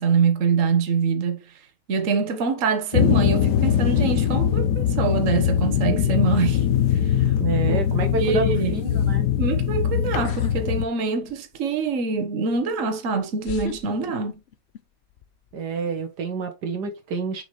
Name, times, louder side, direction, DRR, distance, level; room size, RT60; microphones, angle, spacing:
voice 1, 0.0-1.4 1.9-6.6 7.0-7.3 7.7-7.8 8.2-8.7 9.4-14.4, right 5 dB, 50° right, 1.5 m, -24 dB
sound 1, 2.9-10.9, left 9 dB, 75° left, 1.3 m, -21 dB
voice 2, 7.4-9.2 15.5-17.4, right 4 dB, 70° right, 1.7 m, -28 dB
sound 2, 10.2-10.6 10.9-11.6 12.6-12.7 13.4-14.8 15.1-15.5, left 7 dB, 55° left, 0.7 m, -36 dB
6.4 x 4.8 x 3.1 m
omnidirectional pair, 1.9 m